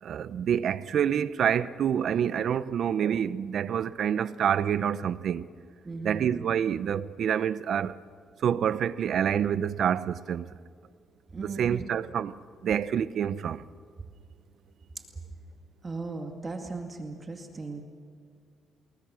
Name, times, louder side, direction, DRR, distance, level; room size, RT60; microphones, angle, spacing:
voice 1, 0.0-5.5 6.0-8.0 8.4-10.5 11.4-12.4 12.6-13.6, right 8 dB, 65° right, 0.8 m, -27 dB
voice 2, 5.8-6.3 11.3-11.8 15.0-15.1 15.8-17.8, right 3 dB, 30° right, 2.2 m, -37 dB
29.5 x 21.0 x 6.4 m
cardioid pair, 90°, 0 cm